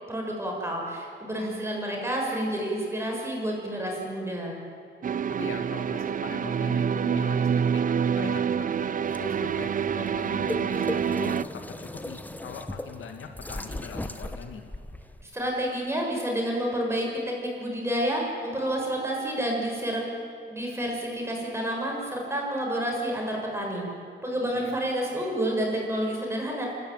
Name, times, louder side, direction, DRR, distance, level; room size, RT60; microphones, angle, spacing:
voice 1, 0.1-4.5 15.2-20.1 20.5-23.8 24.2-26.7, right 1 dB, 10° right, -1 dB, 7.2 m, -29 dB
sound 1, 5.0-11.4, right 7 dB, 40° right, 0.5 m, -27 dB
voice 2, 5.4-7.8 8.2-14.6 24.5-24.7, left 6 dB, 75° left, 5 dB, 2.2 m, -41 dB
sound 2, 9.0-15.2, left 1 dB, 10° left, 1.1 m, -38 dB
29.5 x 13.0 x 9.2 m, 2.6 s
cardioid pair, 100°, 21 cm